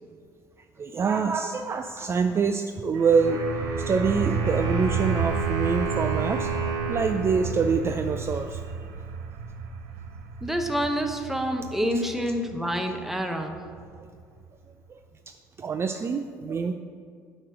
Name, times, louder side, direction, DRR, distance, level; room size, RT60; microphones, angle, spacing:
voice 1, 0.8-3.4 3.8-6.5 6.9-8.6 14.9-15.0 15.3-16.7, right 5 dB, 30° right, 6 dB, 0.4 m, -25 dB
sound 1, 2.9-14.4, right 5 dB, 80° right, 0.5 m, -32 dB
Wind instrument woodwind instrument, 3.2-8.2, right 4 dB, 50° right, 1.9 m, -33 dB
voice 2, 10.4-13.6, equal, 5° right, 5 dB, 0.8 m, -27 dB
8.8 x 3.1 x 6.1 m, 2.1 s
hypercardioid pair, 70°, 8 cm